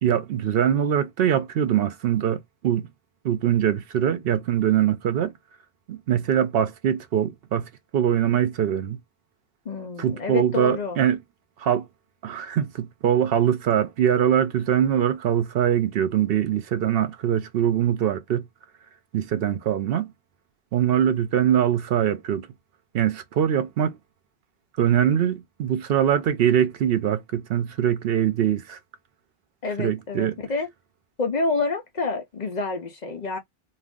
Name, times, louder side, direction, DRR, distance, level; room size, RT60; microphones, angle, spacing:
voice 1, 0.0-2.9 3.2-5.3 5.9-9.0 10.0-11.2 11.6-11.9 12.2-18.4 19.1-20.1 20.7-22.5 22.9-24.0 24.8-28.8 29.8-30.3, right 9 dB, 70° right, 0.7 m, -23 dB
voice 2, 9.7-11.0 29.6-30.7 31.2-33.4, left 3 dB, 50° left, 0.7 m, -28 dB
2.5 x 2.4 x 3.6 m
omnidirectional pair, 1.0 m